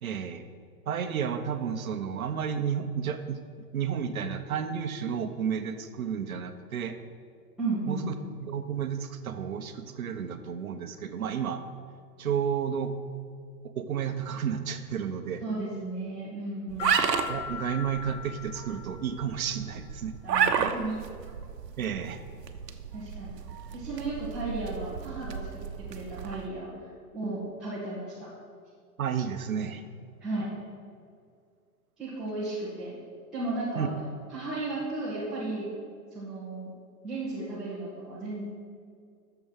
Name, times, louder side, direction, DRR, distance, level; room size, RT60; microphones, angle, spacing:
voice 1, 0.0-0.5 0.9-3.4 3.7-7.0 7.9-8.1 8.4-11.6 12.2-13.0 13.8-15.4 17.3-20.1 21.8-22.2 29.0-29.8 33.7-33.9, right 7 dB, 60° right, 8 dB, 1.1 m, -31 dB
voice 2, 7.6-8.1 15.4-17.0 20.2-21.0 22.9-23.4 23.7-25.4 25.9-26.7 27.1-28.3 30.2-30.5 32.0-33.0 33.3-33.9 34.3-35.7 36.1-36.7 37.0-38.4, right 2 dB, ahead, -14 dB, 2.0 m, -34 dB
sound 1, 16.7-26.5, right 7 dB, 85° right, 1.1 m, -33 dB
sound 2, 16.8-19.4, left 9 dB, 50° left, 1.8 m, -39 dB
11.0 x 7.1 x 6.4 m, 2.2 s
hypercardioid pair, 175°, 48 cm